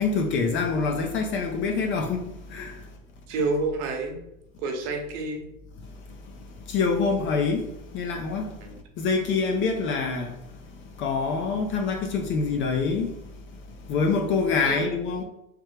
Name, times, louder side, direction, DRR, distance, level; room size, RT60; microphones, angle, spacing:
voice 1, 0.0-2.7 6.7-7.6 7.9-8.5 9.0-10.3 11.0-13.1 13.9-15.2, left 4 dB, 30° left, 0.5 m, -25 dB
voice 2, 3.3-4.2 4.6-5.4 8.6-8.7 14.6-14.9, right 3 dB, 55° right, 1.0 m, -28 dB
3.3 x 3.1 x 3.2 m
hypercardioid pair, 100°, 39 cm